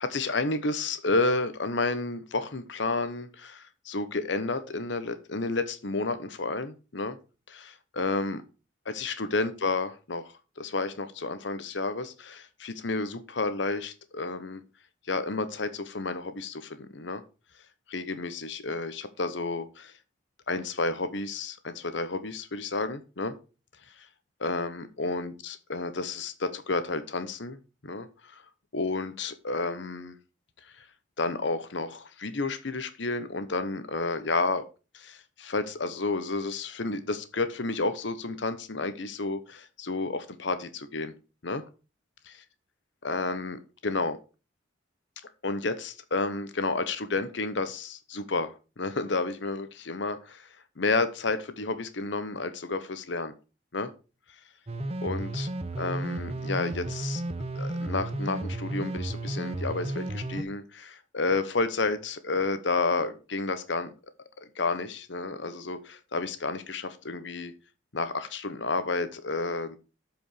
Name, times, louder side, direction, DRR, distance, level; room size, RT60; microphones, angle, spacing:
voice 1, 0.0-7.2 7.5-8.4 8.8-14.6 15.1-17.2 17.9-19.9 20.5-23.4 24.0-24.1 24.4-27.6 27.8-28.4 28.7-30.2 30.6-30.9 31.2-34.6 34.9-41.1 41.4-41.6 43.0-44.2 45.4-50.5 50.8-53.3 53.7-53.9 55.0-55.5 55.8-57.2 57.5-63.9 64.4-67.5 67.9-69.8, left 3 dB, 70° left, 11 dB, 1.0 m, -31 dB
sound 1, 54.7-60.4, right 1 dB, 30° right, 0.7 m, -33 dB
7.7 x 5.2 x 6.6 m, 0.33 s
head